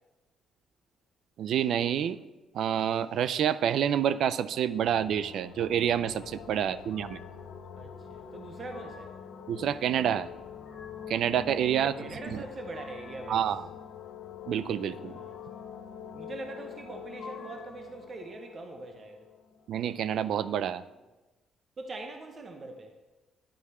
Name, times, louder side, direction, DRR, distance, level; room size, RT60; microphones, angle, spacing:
voice 1, 1.4-2.2 2.5-7.2 9.5-10.3 11.1-12.4 13.3-13.7 14.5-15.1 19.7-20.8, right 9 dB, 70° right, 15 dB, 0.3 m, -28 dB
sound 1, 4.5-20.0, left 7 dB, 80° left, 0.6 m, -45 dB
voice 2, 6.6-7.1 7.7-9.2 12.0-13.4 14.9-19.3 21.8-22.9, right 2 dB, 40° right, 4 dB, 0.8 m, -43 dB
sound 2, 6.9-7.5 8.3-9.3 10.3-11.3 12.2-13.3 14.9-15.7 16.9-17.9, left 4 dB, 60° left, 1.1 m, -52 dB
10.0 x 4.8 x 4.2 m, 1.1 s
cardioid pair, 90°, 0 cm